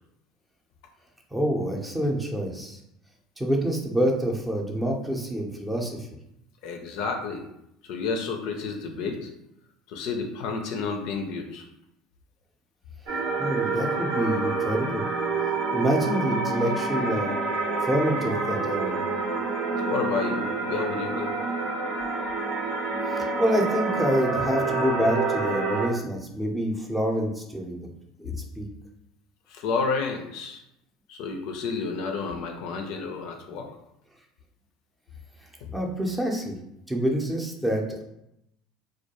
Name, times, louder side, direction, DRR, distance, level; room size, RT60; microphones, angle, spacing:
voice 1, 1.3-2.8 3.4-6.1 13.4-15.1 15.7-17.4 17.8-19.0 23.1-27.9 28.2-28.7 35.7-36.5 36.9-38.0, equal, 10° right, 1 dB, 0.6 m, -27 dB
voice 2, 6.6-7.5 7.8-9.3 9.9-11.6 19.9-21.3 29.5-30.6 31.1-33.7 35.6-35.7, left 4 dB, 65° left, 3 dB, 0.4 m, -30 dB
Wailing Souls, 13.1-25.9, right 3 dB, 70° right, 0.8 m, -28 dB
2.2 x 2.2 x 2.9 m, 0.82 s
hypercardioid pair, 75°, 0 cm